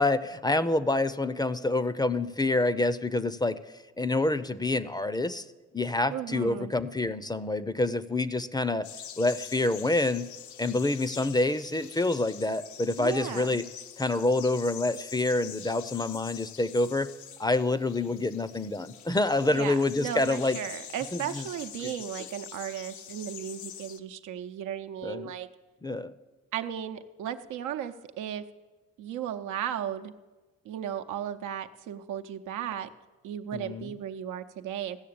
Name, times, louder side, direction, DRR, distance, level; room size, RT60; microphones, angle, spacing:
voice 1, 0.0-3.6 4.0-5.4 5.7-8.9 9.2-10.3 10.6-13.6 14.0-17.1 17.4-20.6 21.1-21.4 21.8-21.9 25.0-25.3 25.8-26.1 33.5-33.9, left 2 dB, 15° left, 15 dB, 0.5 m, -27 dB
voice 2, 6.1-6.7 13.0-13.6 19.5-25.5 26.5-28.4 29.0-30.1 30.6-32.9 33.2-35.0, right 10 dB, 85° right, 7 dB, 0.8 m, -35 dB
sound 1, 8.8-24.0, left 9 dB, 75° left, 0.8 m, -45 dB
15.5 x 6.6 x 8.6 m, 1.2 s
cardioid pair, 90°, 30 cm